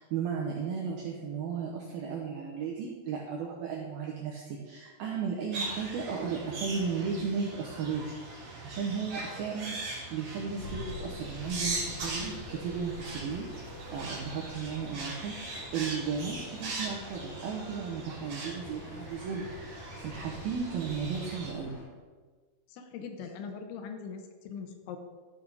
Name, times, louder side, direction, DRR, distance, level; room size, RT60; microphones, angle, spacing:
voice 1, 0.0-9.8 10.1-13.5 13.9-21.8, right 6 dB, 80° right, -1 dB, 2.1 m, -35 dB
sound 1, 5.5-21.5, right 2 dB, 50° right, 2.3 m, -40 dB
sound 2, 10.6-21.8, left 3 dB, 60° left, 3.2 m, -47 dB
voice 2, 22.7-25.0, left 6 dB, 80° left, 6 dB, 3.1 m, -41 dB
13.0 x 5.9 x 4.0 m, 1.4 s
omnidirectional pair, 5.5 m